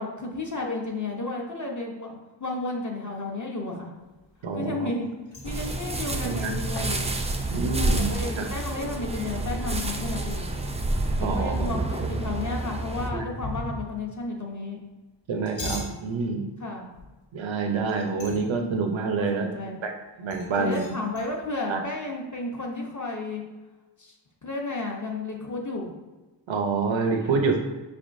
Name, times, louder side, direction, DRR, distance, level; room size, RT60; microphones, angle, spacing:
voice 1, 0.0-3.9 4.5-5.1 5.4-7.0 7.8-10.5 11.3-14.8 16.6-16.9 19.2-19.8 20.6-23.4 24.0-24.1 24.4-25.9 27.2-27.3, left 2 dB, 40° left, -1 dB, 0.8 m, -33 dB
sound 1, 4.1-5.0 5.3-10.1 10.5-10.6 10.8-11.5 13.0-14.1 15.2-16.0 17.0-17.3 17.7-18.6 20.3-21.3, left 1 dB, 75° left, 1.1 m, -40 dB
voice 2, 4.4-4.9 6.2-6.6 7.5-8.4 11.2-11.7 13.1-13.2 15.3-16.5 17.3-19.5 19.8-19.9 20.2-20.9 21.7-21.8 26.5-27.6, right 4 dB, 85° right, 4 dB, 0.7 m, -27 dB
sound 2, 5.4-13.1, right 2 dB, 15° right, 0.3 m, -29 dB
5.4 x 3.5 x 2.5 m, 1.2 s
wide cardioid pair, 80°, 45 cm